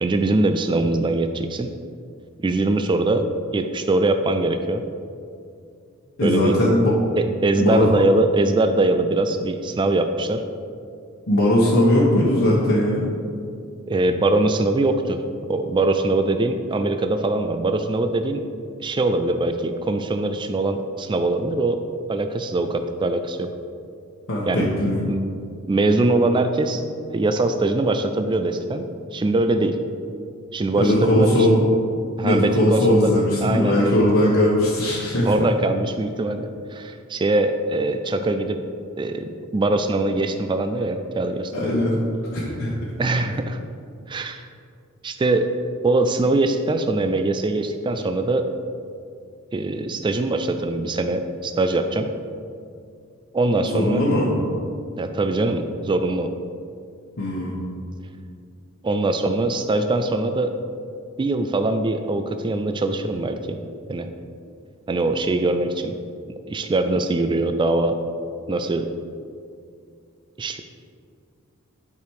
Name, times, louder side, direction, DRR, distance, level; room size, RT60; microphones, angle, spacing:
voice 1, 0.0-1.7 2.4-3.3 3.5-4.8 6.2-6.6 7.2-10.4 13.9-15.2 15.5-18.4 18.8-21.8 22.1-23.5 24.5-24.7 25.1-25.2 25.7-26.8 27.1-28.8 29.1-29.8 30.5-31.4 32.2-33.1 33.4-33.9 35.2-38.6 39.0-41.7 43.0-43.6 44.1-44.4 45.0-45.5 45.8-48.5 49.5-52.1 53.3-54.0 55.0-56.3 58.8-60.5 61.2-63.6 63.9-64.1 64.9-65.9 66.5-68.0 68.5-68.9 70.4-70.6, right 2 dB, 20° right, 7 dB, 0.3 m, -22 dB
voice 2, 6.2-6.9 7.6-7.9 11.3-13.1 24.3-25.0 30.8-31.6 32.2-35.5 41.5-42.0 42.3-42.7 53.7-54.3 57.2-57.6, left 1 dB, 65° left, -6 dB, 1.2 m, -19 dB
9.2 x 5.1 x 4.7 m, 2.4 s
head